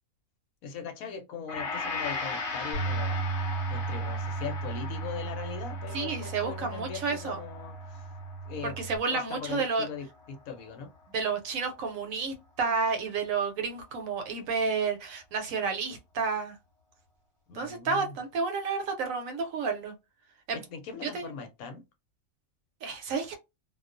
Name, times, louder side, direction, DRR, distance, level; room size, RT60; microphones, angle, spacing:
voice 1, 0.6-3.2 3.7-8.1 8.4-8.8 9.1-10.9 17.5-18.2 20.5-21.9, left 6 dB, 75° left, 1.0 m, -40 dB
Gong, 1.5-9.9 10.2-10.4, left 4 dB, 50° left, 0.7 m, -39 dB
Bass guitar, 2.7-9.0, right 4 dB, 35° right, 0.7 m, -35 dB
voice 2, 5.9-7.4 8.6-9.9 11.1-16.6 17.5-19.9 20.5-20.6 21.1-21.3 22.8-23.4, right 5 dB, 70° right, 0.9 m, -31 dB
2.3 x 2.2 x 2.4 m
omnidirectional pair, 1.6 m